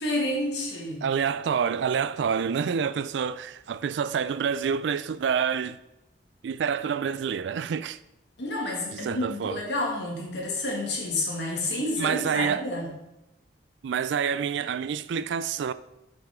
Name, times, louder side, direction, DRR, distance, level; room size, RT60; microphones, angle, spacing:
voice 1, 0.0-1.0 8.4-12.9, left 1 dB, 75° left, 1.9 m, -29 dB
voice 2, 1.0-5.8 6.4-8.0 8.9-9.6 11.8-12.7 13.8-15.7, right 7 dB, 80° right, 0.3 m, -27 dB
7.4 x 5.6 x 3.6 m
head